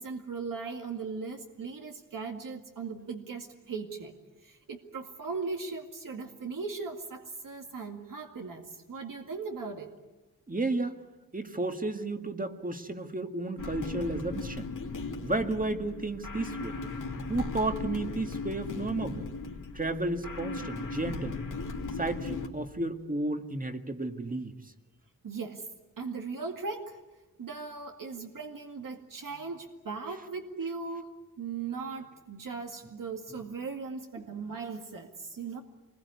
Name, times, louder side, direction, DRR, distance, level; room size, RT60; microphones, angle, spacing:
voice 1, 0.0-4.1 4.4-9.9 25.2-25.7 26.0-27.0 27.4-35.6, right 4 dB, 70° right, 3 dB, 2.1 m, -38 dB
voice 2, 10.5-11.0 11.3-14.7 15.2-16.8 17.3-19.3 19.7-21.4 22.0-24.5 34.2-34.3, right 2 dB, 25° right, 6 dB, 2.0 m, -32 dB
sound 1, 13.6-22.5, left 4 dB, 65° left, 2.8 m, -37 dB
27.0 x 21.0 x 9.6 m, 1.1 s
wide cardioid pair, 90°, 33 cm